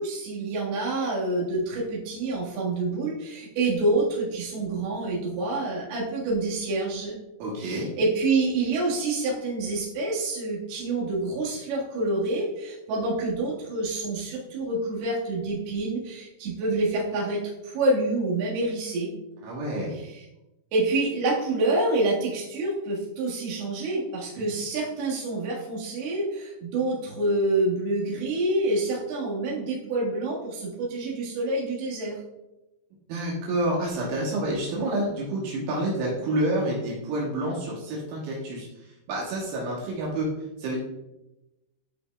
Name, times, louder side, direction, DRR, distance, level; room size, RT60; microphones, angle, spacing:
voice 1, 0.0-7.2 7.6-19.1 19.9-20.3 20.7-32.2, right 2 dB, 60° right, -5 dB, 3.4 m, -27 dB
voice 2, 7.4-7.9 19.4-19.9 33.1-40.3 40.6-40.8, right 1 dB, 80° right, -4 dB, 3.5 m, -28 dB
11.5 x 5.1 x 2.4 m, 0.96 s
omnidirectional pair, 5.6 m